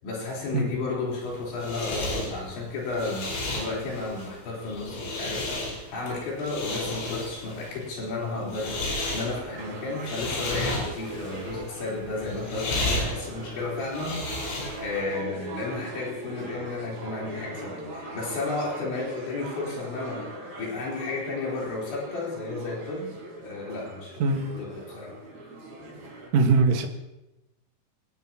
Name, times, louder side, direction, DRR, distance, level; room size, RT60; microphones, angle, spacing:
voice 1, 0.0-14.2 14.6-24.2 24.6-25.2 25.8-26.0, left 3 dB, 65° left, -4 dB, 6.3 m, -33 dB
sound 1, 1.1-15.0, left 2 dB, 85° left, 7.6 m, -33 dB
sound 2, 8.6-26.3, right 2 dB, 40° right, 5.3 m, -40 dB
voice 2, 26.3-26.9, right 3 dB, 70° right, 2 dB, 1.6 m, -21 dB
25.0 x 19.0 x 3.0 m, 0.95 s
omnidirectional pair, 5.7 m